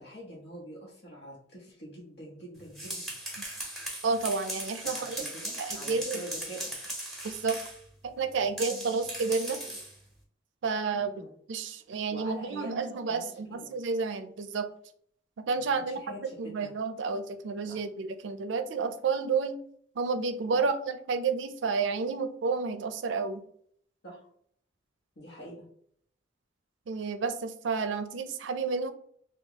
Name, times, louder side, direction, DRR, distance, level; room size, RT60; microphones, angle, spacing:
voice 1, 0.0-3.1 4.8-6.8 11.1-11.3 12.1-13.7 15.5-16.7 17.7-17.8 20.5-20.7 24.0-24.3 25.2-25.7, equal, 65° left, -4 dB, 1.0 m, -45 dB
sound 1, 2.6-7.8 8.6-10.0, right 1 dB, ahead, 0.9 m, -38 dB
voice 2, 4.0-5.2 5.6-6.2 7.2-7.6 8.0-9.8 10.6-14.7 15.5-16.0 16.4-19.6 20.0-23.4 26.9-28.9, right 4 dB, 75° right, 9 dB, 0.4 m, -30 dB
2.9 x 2.3 x 3.7 m, 0.63 s
head